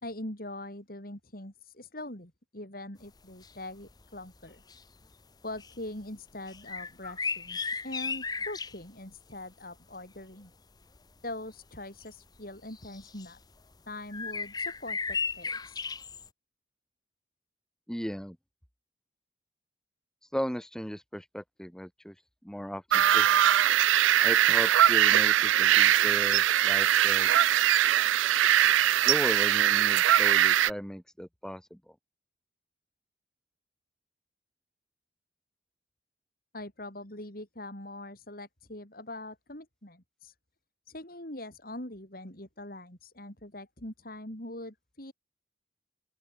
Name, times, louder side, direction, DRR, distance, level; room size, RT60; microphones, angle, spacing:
voice 1, 0.0-4.6 5.4-10.5 11.2-13.4 13.9-15.9 36.5-40.3 40.9-45.1, left 1 dB, 50° left, 4.9 m, -42 dB
sound 1, 3.4-3.5 3.9-4.1 4.5-5.1 5.6-5.8 6.5-8.8 11.0-11.1 12.0-12.1 12.7-13.3 14.1-16.3, left 5 dB, 20° left, 0.9 m, -35 dB
voice 2, 17.9-18.4 20.3-22.1 22.4-23.3 24.2-27.3 29.0-31.9, equal, 5° left, 1.1 m, -36 dB
sound 2, 22.9-30.7, right 11 dB, 85° right, 0.3 m, -22 dB
open air
head